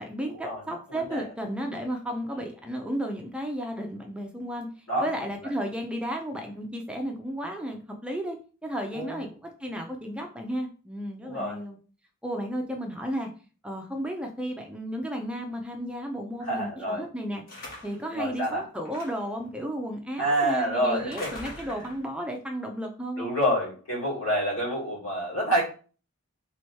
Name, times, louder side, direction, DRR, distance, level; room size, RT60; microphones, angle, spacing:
voice 1, 0.0-4.7 5.0-11.8 12.2-13.3 13.6-17.4 17.8-23.3, equal, 5° right, 3 dB, 0.5 m, -33 dB
voice 2, 0.9-1.3 2.3-2.4 4.9-5.1 8.9-9.2 11.2-11.6 16.4-17.0 18.1-18.6 20.2-21.3 21.6-21.8 23.2-25.6, right 1 dB, 80° left, -4 dB, 2.0 m, -28 dB
sound 1, 17.5-18.1 18.9-19.4 20.9-22.1, left 2 dB, 45° left, 1.3 m, -42 dB
3.1 x 3.0 x 4.5 m, 0.38 s
head